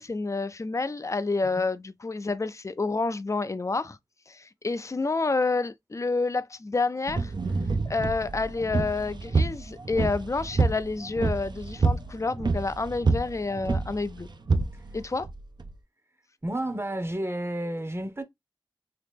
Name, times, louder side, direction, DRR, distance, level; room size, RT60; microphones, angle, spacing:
voice 1, 0.0-4.0 4.3-7.3 7.8-14.3 14.9-15.3, left 3 dB, 40° left, 0.4 m, -29 dB
sound 1, 7.1-15.7, right 3 dB, 60° right, 0.5 m, -28 dB
voice 2, 16.4-18.2, right 1 dB, 30° right, 0.7 m, -31 dB
2.9 x 2.9 x 3.4 m
wide cardioid pair, 40°, 8 cm